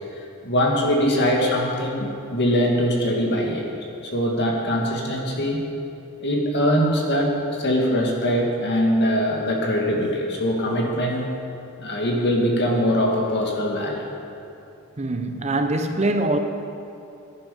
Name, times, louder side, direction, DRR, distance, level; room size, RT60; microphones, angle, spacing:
voice 1, 0.4-3.6 4.0-5.7 6.2-11.3 11.8-14.1, equal, 55° left, 2.1 m, -22 dB
voice 2, 15.0-16.4, right 2 dB, 30° right, 0.7 m, -23 dB
16.0 x 10.5 x 5.3 m
head